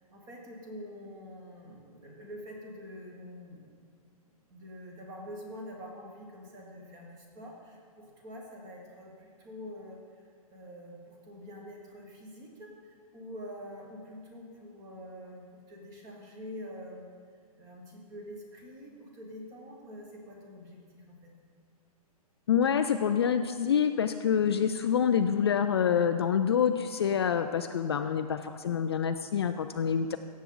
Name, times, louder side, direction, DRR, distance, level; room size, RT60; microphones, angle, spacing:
voice 1, 0.0-3.7 4.5-17.0 17.6-21.3, equal, 15° right, 0 dB, 1.3 m, -46 dB
voice 2, 22.5-30.2, left 8 dB, 40° left, 8 dB, 0.4 m, -27 dB
16.0 x 7.3 x 3.8 m, 2.1 s
hypercardioid pair, 170°, 20 cm